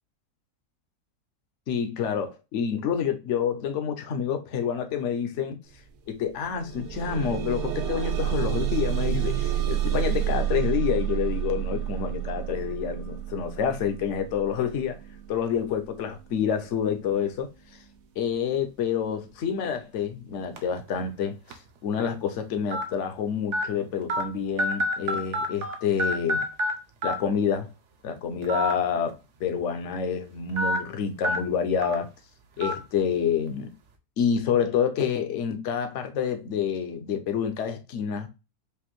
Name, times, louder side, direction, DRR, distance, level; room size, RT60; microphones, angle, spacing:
voice 1, 1.7-5.6 6.1-15.0 15.3-17.5 18.2-26.4 27.0-27.7 28.0-32.1 32.6-33.7 34.2-38.3, left 7 dB, 60° left, 0.9 m, -28 dB
sound 1, 5.7-5.8 6.2-17.2 18.0-18.1 18.6-18.7, right 11 dB, 85° right, 1.2 m, -30 dB
sound 2, 20.6-20.8 21.5-21.6 22.7-22.8 23.5-23.6 24.1-24.2 24.6-25.7 26.0-26.7 27.0-27.1 28.4-28.7 29.1-29.2 30.6-30.8 31.2-31.4 31.8-32.0 32.6-32.7, equal, 60° right, 0.9 m, -26 dB
5.0 x 2.6 x 3.0 m
omnidirectional pair, 1.6 m